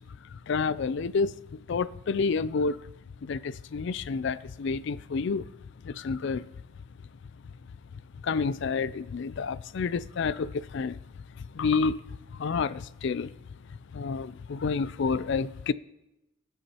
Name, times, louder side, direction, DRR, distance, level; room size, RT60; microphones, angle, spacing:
voice 1, 0.3-2.8 3.2-5.4 5.8-6.5 8.2-11.0 11.5-12.0 12.3-13.3 13.9-15.7, left 5 dB, 55° left, 0.4 m, -29 dB
20.0 x 8.1 x 2.9 m
head